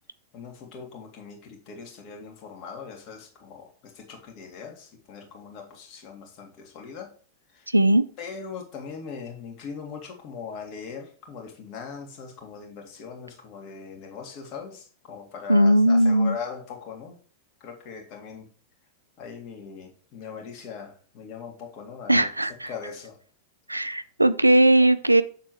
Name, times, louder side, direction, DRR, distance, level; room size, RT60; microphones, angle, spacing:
voice 1, 0.3-7.1 7.5-7.7 8.2-17.2 17.6-18.5 19.2-22.3 22.6-23.2, left 6 dB, 40° left, 2.0 m, -40 dB
voice 2, 7.7-8.0 15.5-16.4 22.1-22.7 23.7-25.2, right 1 dB, 85° right, 0.5 m, -18 dB
6.8 x 6.6 x 3.0 m
figure-of-eight pair, 90°, 0 cm